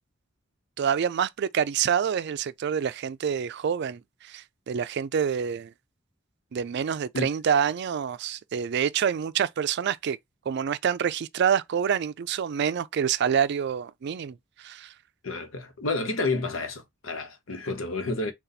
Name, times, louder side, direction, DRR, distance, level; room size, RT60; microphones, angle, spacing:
voice 1, 0.8-5.7 6.5-10.2 10.5-14.9, right 7 dB, 60° right, 0.4 m, -27 dB
voice 2, 15.2-18.3, left 3 dB, 85° left, 1.0 m, -30 dB
4.0 x 2.3 x 4.1 m
head